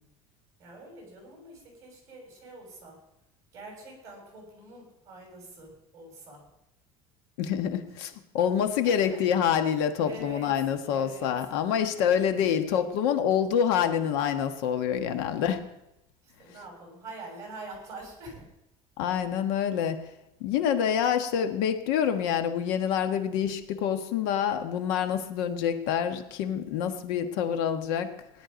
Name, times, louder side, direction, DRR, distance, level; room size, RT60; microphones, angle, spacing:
voice 1, 0.6-3.0 3.5-6.4 8.8-9.2 10.0-11.5 12.0-12.4 15.0-15.4 16.2-18.4, right 2 dB, 30° right, 0 dB, 6.1 m, -45 dB
voice 2, 7.4-15.6 19.0-20.0 20.4-28.1, left 8 dB, 90° left, 7 dB, 1.4 m, -27 dB
17.0 x 11.0 x 5.2 m, 0.87 s
cardioid pair, 170°, 12 cm